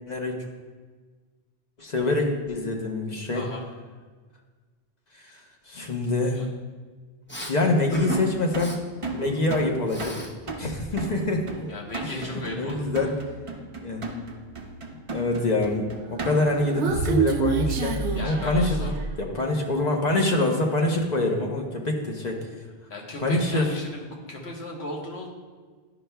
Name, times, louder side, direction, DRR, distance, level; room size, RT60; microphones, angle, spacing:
voice 1, 0.1-0.5 1.8-3.4 5.1-6.4 7.5-8.8 9.1-10.2 10.6-11.5 12.0-12.2 12.6-13.1 13.8-14.1 15.1-18.9 19.2-22.4 23.2-23.7, left 2 dB, 45° left, 1 dB, 0.8 m, -25 dB
voice 2, 3.3-3.7 6.3-6.5 11.7-12.9 18.1-18.9 22.9-25.3, left 2 dB, 75° left, -1 dB, 1.4 m, -36 dB
Respiratory sounds, 7.3-7.5 7.9-8.2 8.5-8.8 9.2-10.3 10.6-12.0, equal, 15° left, 0.5 m, -37 dB
sound 1, 8.1-16.7, right 3 dB, 40° right, 0.5 m, -36 dB
Human voice, 16.3-19.2, right 4 dB, 85° right, 0.9 m, -26 dB
10.5 x 5.5 x 2.2 m, 1.5 s
omnidirectional pair, 1.1 m